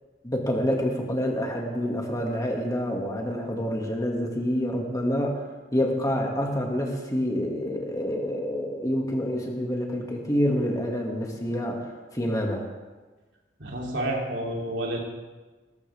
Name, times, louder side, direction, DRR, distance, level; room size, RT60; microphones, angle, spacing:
voice 1, 0.2-5.4 5.7-12.6, equal, 20° left, 0 dB, 2.3 m, -27 dB
voice 2, 13.6-15.0, right 1 dB, 85° right, -2 dB, 3.3 m, -29 dB
19.5 x 13.0 x 3.6 m, 1.3 s
head